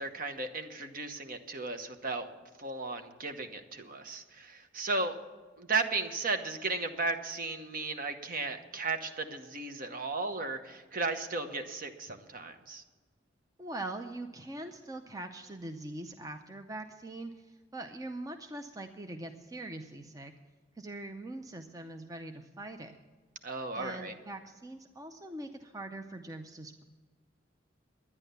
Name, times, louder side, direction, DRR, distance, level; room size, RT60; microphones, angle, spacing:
voice 1, 0.0-2.3 2.6-5.1 5.6-12.8 23.4-24.1, right 3 dB, 50° right, 7 dB, 1.0 m, -35 dB
voice 2, 13.6-20.3 20.8-23.0 23.7-26.8, right 2 dB, 20° right, 6 dB, 0.6 m, -42 dB
11.0 x 9.8 x 6.8 m, 1.4 s
head